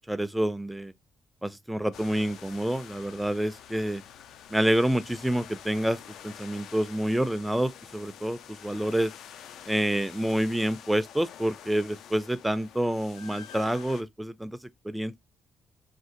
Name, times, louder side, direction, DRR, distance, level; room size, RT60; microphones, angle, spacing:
voice 1, 0.1-0.9 1.4-4.0 4.5-6.0 6.2-9.1 9.7-14.6 14.8-15.2, right 1 dB, 5° right, 0.3 m, -28 dB
sound 1, 1.9-14.0, left 9 dB, 80° left, 0.3 m, -47 dB
2.6 x 2.4 x 3.7 m
cardioid pair, 90°, 0 cm